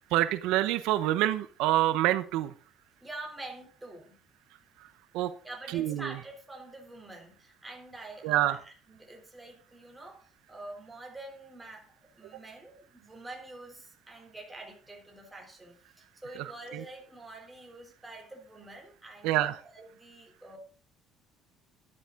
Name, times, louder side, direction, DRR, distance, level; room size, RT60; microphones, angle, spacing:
voice 1, 0.1-2.5 5.1-5.3 5.7-6.1 8.2-8.6 16.4-16.8 19.2-19.6, right 14 dB, 85° right, 12 dB, 0.9 m, -27 dB
voice 2, 3.0-4.1 5.4-11.9 12.1-20.6, right 2 dB, 10° right, 2 dB, 3.3 m, -46 dB
13.0 x 11.0 x 3.8 m, 0.40 s
cardioid pair, 145°, 0 cm